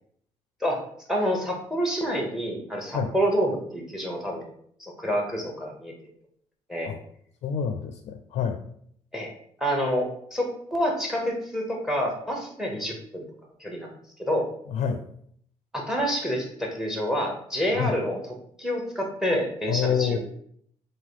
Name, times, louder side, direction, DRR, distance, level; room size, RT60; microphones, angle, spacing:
voice 1, 1.1-4.5 4.8-5.9 6.7-6.9 9.1-9.3 9.6-13.2 13.6-13.9 14.2-14.5 15.7-20.2, equal, 5° right, 1 dB, 1.0 m, -28 dB
voice 2, 7.4-8.6 14.7-15.0 17.8-17.9 19.7-20.2, left 7 dB, 60° left, 6 dB, 0.4 m, -27 dB
3.8 x 2.6 x 4.7 m, 0.65 s
cardioid pair, 135°, 12 cm